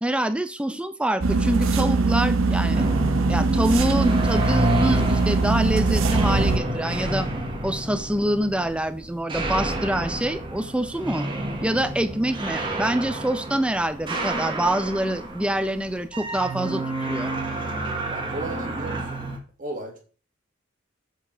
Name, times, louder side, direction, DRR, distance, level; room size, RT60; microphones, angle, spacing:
voice 1, 0.0-2.9 3.3-7.3 7.6-11.3 11.6-17.3, right 1 dB, 5° right, 10 dB, 0.4 m, -25 dB
sound 1, 1.2-6.6, right 3 dB, 65° right, 0.7 m, -22 dB
sound 2, 2.7-19.4, right 1 dB, 20° right, 1.2 m, -29 dB
voice 2, 18.1-19.1 19.6-20.0, right 2 dB, 40° right, 1 dB, 1.8 m, -34 dB
7.2 x 4.5 x 4.4 m, 0.39 s
head